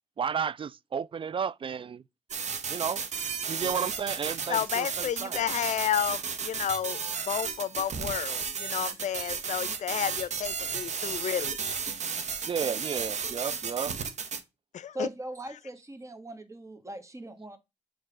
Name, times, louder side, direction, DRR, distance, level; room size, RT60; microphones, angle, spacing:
voice 1, 0.2-2.0 2.7-3.0 3.5-5.6 12.4-13.9, right 7 dB, 40° right, 0.3 m, -32 dB
sound 1, 2.3-14.4, right 6 dB, 60° right, 1.1 m, -33 dB
voice 2, 4.5-7.0 7.3-11.6 14.7-15.1, left 9 dB, 65° left, 0.5 m, -31 dB
voice 3, 14.9-17.6, right 1 dB, 25° right, 1.4 m, -39 dB
6.4 x 3.2 x 5.0 m
supercardioid pair, 45°, 13 cm